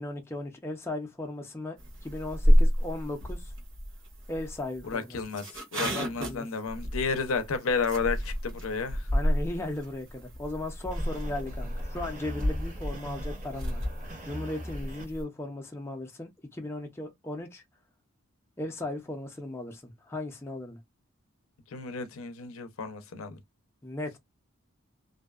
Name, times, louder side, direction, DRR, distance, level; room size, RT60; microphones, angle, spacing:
voice 1, 0.0-1.8 2.0-3.5 4.3-5.2 5.9-6.5 9.1-13.8 14.2-17.6 18.6-20.8 23.8-24.2, left 2 dB, 10° left, 0.5 m, -37 dB
sound 1, 1.8-15.2, equal, 60° right, 1.0 m, -30 dB
voice 2, 4.8-9.1 21.7-23.4, left 5 dB, 75° left, 0.5 m, -32 dB
sound 2, 10.9-15.0, right 1 dB, 35° right, 0.8 m, -43 dB
2.6 x 2.2 x 2.3 m
head